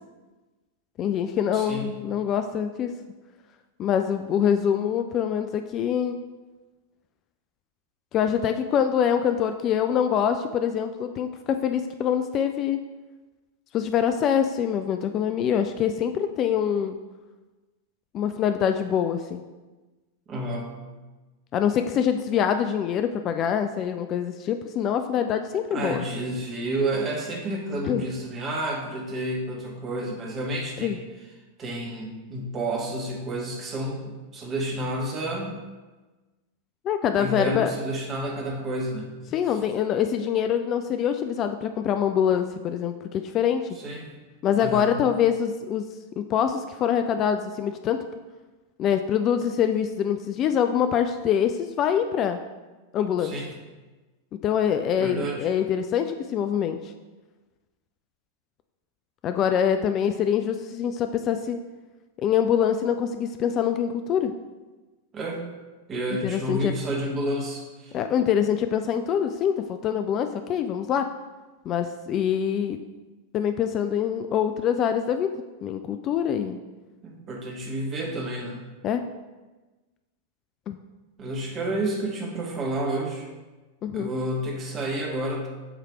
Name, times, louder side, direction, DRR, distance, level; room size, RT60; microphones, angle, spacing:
voice 1, 1.0-2.9 3.8-6.2 8.1-12.8 13.7-17.0 18.1-19.4 21.5-26.0 27.8-28.0 30.8-31.0 36.8-37.7 39.3-43.8 44.4-45.8 46.2-48.1 48.8-52.4 52.9-53.3 54.4-56.8 59.2-61.6 62.2-64.3 66.2-66.7 67.9-71.0 71.7-72.8 73.3-75.3 75.6-76.6 78.8-79.0 80.7-80.8 83.8-84.1, left 8 dB, 35° left, 8 dB, 0.3 m, -24 dB
voice 2, 1.5-1.9 20.3-20.8 25.7-31.0 31.6-35.6 37.2-39.1 43.8-44.1 44.6-44.9 53.2-53.5 55.0-55.5 65.1-65.5 65.9-68.0 77.0-78.6 81.2-83.3 83.9-85.5, right 1 dB, 30° right, 0 dB, 1.4 m, -30 dB
7.3 x 3.2 x 4.8 m, 1.2 s
figure-of-eight pair, 90°, 0 cm